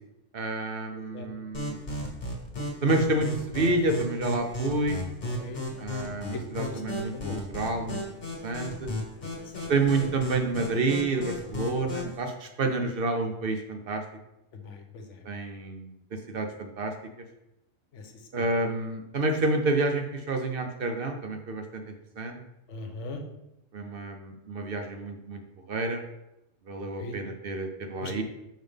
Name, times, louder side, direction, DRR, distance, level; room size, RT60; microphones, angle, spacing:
voice 1, 0.3-1.8 2.8-5.0 5.8-8.0 8.4-8.9 9.7-14.0 15.2-15.9 16.3-16.9 18.3-22.4 23.7-25.4 25.7-26.0 26.7-28.2, right 2 dB, 55° right, 5 dB, 0.8 m, -29 dB
voice 2, 0.9-1.3 3.6-3.8 5.3-5.6 6.3-7.4 9.2-9.7 14.5-15.2 17.9-18.5 22.7-23.2 27.0-27.2 28.0-28.2, left 2 dB, 70° left, 5 dB, 1.1 m, -41 dB
sound 1, 1.5-12.2, left 2 dB, 45° left, 1.6 m, -35 dB
5.5 x 5.5 x 3.4 m, 0.88 s
omnidirectional pair, 1.3 m